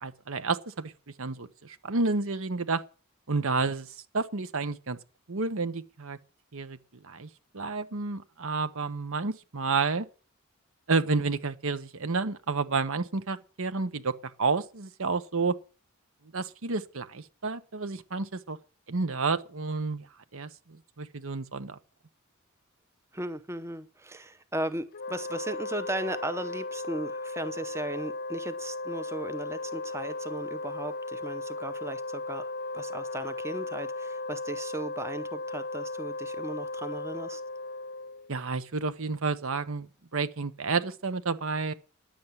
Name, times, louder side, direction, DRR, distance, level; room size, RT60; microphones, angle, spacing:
voice 1, 0.0-0.9 1.2-2.8 3.3-3.9 4.1-5.0 5.3-6.2 6.5-6.8 7.0-7.3 7.5-10.1 10.9-15.6 16.3-18.6 18.9-20.1 20.3-21.8 38.3-41.7, right 4 dB, 70° right, 1.0 m, -30 dB
voice 2, 23.1-37.4, right 1 dB, 15° right, 0.7 m, -36 dB
Wind instrument woodwind instrument, 24.9-38.3, left 2 dB, 45° left, 0.7 m, -36 dB
10.5 x 7.3 x 9.5 m
head